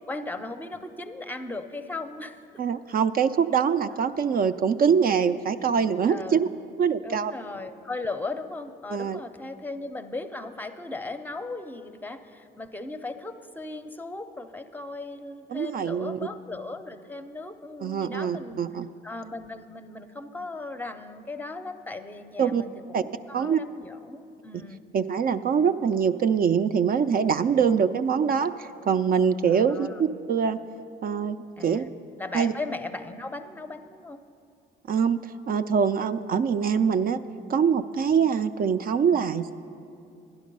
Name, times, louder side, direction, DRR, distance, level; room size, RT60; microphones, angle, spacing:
voice 1, 0.1-2.4 4.1-4.2 6.1-6.4 7.0-18.6 19.0-24.8 27.6-27.7 29.5-30.0 31.6-31.9 32.2-34.2, left 2 dB, 10° left, 9 dB, 0.6 m, -37 dB
voice 2, 2.6-6.5 6.8-7.3 8.9-9.2 15.5-16.2 17.8-18.9 22.4-22.6 22.9-23.0 23.3-23.6 24.9-30.6 31.0-31.8 32.3-32.5 34.9-37.2 37.5-39.5, right 7 dB, 50° right, 10 dB, 0.4 m, -24 dB
11.5 x 11.0 x 5.3 m, 2.6 s
cardioid pair, 90°, 20 cm